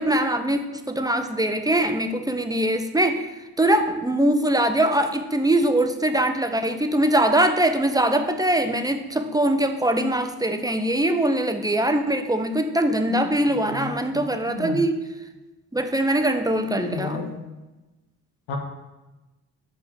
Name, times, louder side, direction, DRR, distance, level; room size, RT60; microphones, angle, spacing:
voice 1, 0.0-15.1 15.7-17.3, right 1 dB, 10° right, 6 dB, 1.1 m, -22 dB
voice 2, 13.7-14.0 14.5-14.8 16.7-17.3 18.5-18.6, left 3 dB, 80° left, 2 dB, 1.3 m, -32 dB
6.6 x 5.0 x 6.7 m, 1.1 s
hypercardioid pair, 40°, 43 cm